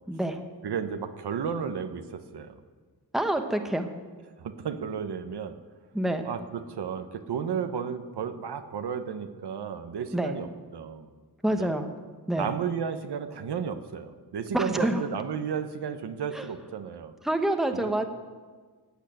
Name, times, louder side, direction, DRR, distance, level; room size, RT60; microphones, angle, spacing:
voice 1, 0.1-0.4 3.1-3.9 5.9-6.3 10.1-10.4 11.4-11.9 12.3-12.5 14.5-15.0 16.3-16.5 17.2-18.0, right 1 dB, ahead, 6 dB, 1.0 m, -27 dB
voice 2, 0.6-2.5 4.4-5.5 6.2-10.5 10.7-11.1 11.6-11.7 12.4-17.1 17.7-17.9, right 7 dB, 75° right, 8 dB, 1.2 m, -33 dB
15.5 x 8.3 x 9.1 m, 1.5 s
wide cardioid pair, 140°, 40 cm